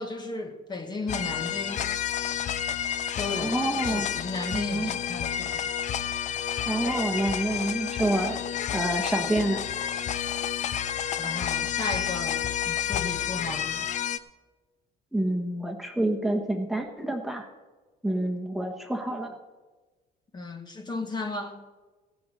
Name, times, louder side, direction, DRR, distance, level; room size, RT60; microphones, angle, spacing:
voice 1, 0.0-1.9 3.2-5.7 11.2-13.9 20.3-21.6, left 3 dB, 25° left, 5 dB, 1.2 m, -35 dB
sound 1, 1.1-14.2, left 9 dB, 45° left, 0.6 m, -30 dB
voice 2, 3.4-4.1 4.5-4.9 6.7-8.4 8.7-9.6 15.1-17.5 18.0-19.3, right 1 dB, ahead, 3 dB, 1.2 m, -28 dB
16.0 x 7.0 x 6.4 m, 1.3 s
cardioid pair, 110°, 17 cm